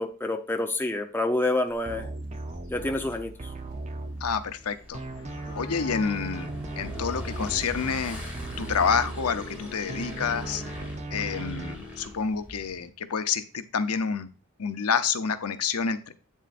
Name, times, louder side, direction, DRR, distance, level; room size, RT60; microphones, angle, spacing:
voice 1, 0.0-2.1 2.7-3.3 5.4-5.6, left 2 dB, 10° left, 4 dB, 0.7 m, -28 dB
sound 1, 1.7-12.5, left 3 dB, 25° left, 2.7 m, -49 dB
sound 2, 1.8-4.6 4.9-9.6 9.9-11.7, right 2 dB, 30° right, 0.7 m, -37 dB
Motorcycle / Engine, 3.3-12.8, left 1 dB, 5° right, 2.6 m, -42 dB
voice 2, 4.2-5.0 5.6-8.2 8.6-10.6 11.1-14.3 14.6-16.1, left 6 dB, 80° left, 10 dB, 0.7 m, -28 dB
8.4 x 7.4 x 2.5 m, 0.36 s
head